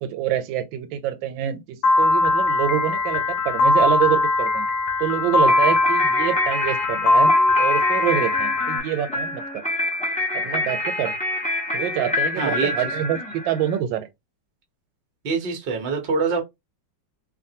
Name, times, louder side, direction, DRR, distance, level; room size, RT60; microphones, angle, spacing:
voice 1, 0.0-4.7 5.0-7.3 7.6-9.6 10.3-11.2 11.7-14.1, right 11 dB, 90° right, 1.3 m, -26 dB
Piano, 1.8-8.8, left 2 dB, 70° left, 1.0 m, -20 dB
sound 1, 5.5-13.8, left 2 dB, 5° left, 0.5 m, -27 dB
voice 2, 12.4-12.9 15.2-16.4, right 4 dB, 45° right, 0.7 m, -25 dB
2.8 x 2.5 x 2.7 m
omnidirectional pair, 2.0 m